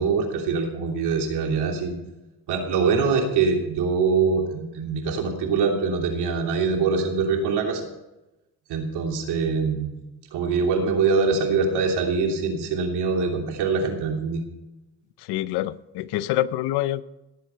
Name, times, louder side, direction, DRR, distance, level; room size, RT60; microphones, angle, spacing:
voice 1, 0.0-1.9 2.5-7.9 8.7-10.0 10.3-14.4, right 5 dB, 80° right, 2 dB, 3.1 m, -23 dB
voice 2, 15.2-17.0, left 14 dB, 85° left, 16 dB, 0.7 m, -26 dB
18.0 x 8.1 x 4.5 m, 0.97 s
cardioid pair, 110°, 39 cm